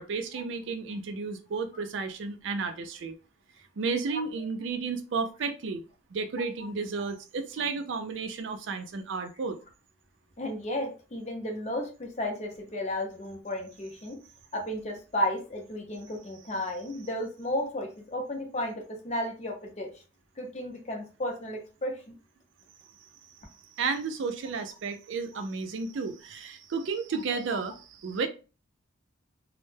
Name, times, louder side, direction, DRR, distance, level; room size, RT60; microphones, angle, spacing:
voice 1, 0.0-3.1 3.8-5.8 6.1-9.6 23.8-28.3, right 4 dB, 70° right, 8 dB, 0.4 m, -32 dB
voice 2, 10.4-14.2 14.5-20.0 20.4-22.1 25.3-25.4, left 1 dB, 35° left, 1 dB, 0.6 m, -33 dB
2.1 x 2.1 x 3.1 m, 0.33 s
head